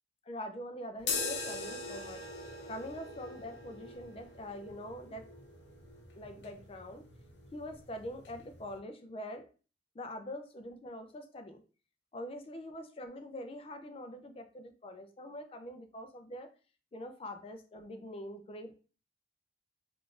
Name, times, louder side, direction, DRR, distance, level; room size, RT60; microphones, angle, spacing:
voice 1, 0.2-2.3 2.7-5.2 6.2-7.1 7.5-9.5 9.9-11.6 12.1-16.5 16.9-18.7, left 1 dB, 30° left, 6 dB, 0.4 m, -44 dB
sound 1, 1.0-8.8, left 3 dB, 70° left, 0.7 m, -42 dB
3.6 x 2.4 x 2.4 m, 0.36 s
head